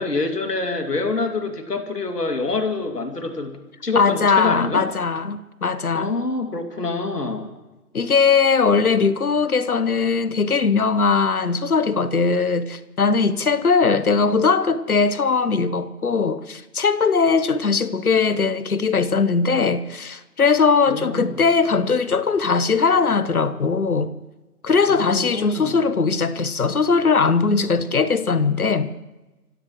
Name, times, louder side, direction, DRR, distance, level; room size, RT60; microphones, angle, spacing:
voice 1, 0.0-3.6 3.8-4.8 5.9-7.5 20.9-21.4 24.9-25.8, left 3 dB, 85° left, 2.8 m, -26 dB
voice 2, 3.9-6.1 7.9-24.1 24.6-28.9, left 5 dB, 65° left, 1.1 m, -20 dB
26.5 x 16.5 x 3.1 m
figure-of-eight pair, 165°, 46 cm